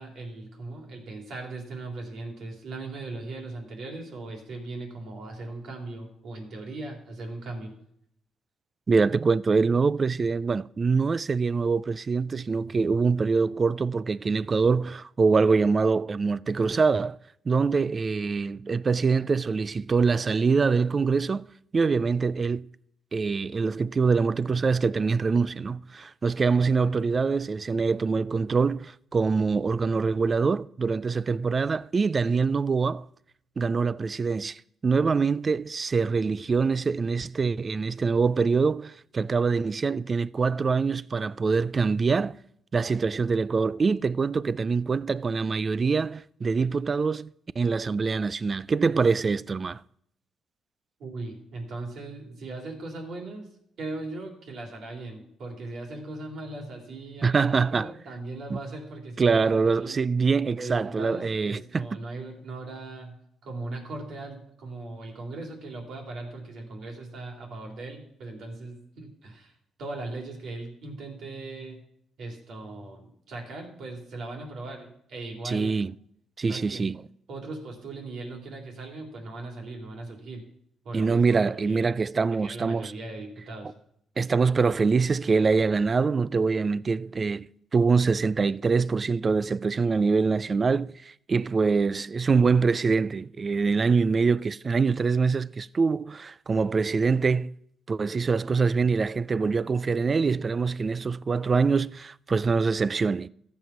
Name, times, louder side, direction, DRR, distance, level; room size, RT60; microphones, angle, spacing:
voice 1, 0.0-7.7 51.0-53.5 53.8-60.0 60.5-63.2 63.4-69.5 69.8-71.8 72.2-75.8 76.5-76.9 77.3-80.4 80.8-81.9 82.4-83.7, right 2 dB, 65° right, 3.4 m, -38 dB
voice 2, 8.9-17.2 17.5-21.5 21.7-22.6 23.1-33.1 33.6-42.4 42.7-47.3 47.6-49.8 57.2-57.9 58.5-58.6 59.2-61.9 75.4-75.9 76.4-77.0 80.9-82.9 84.2-87.5 87.7-97.5 97.9-103.3, right 4 dB, 35° right, 0.3 m, -24 dB
14.0 x 7.4 x 6.0 m
cardioid pair, 90°, 0 cm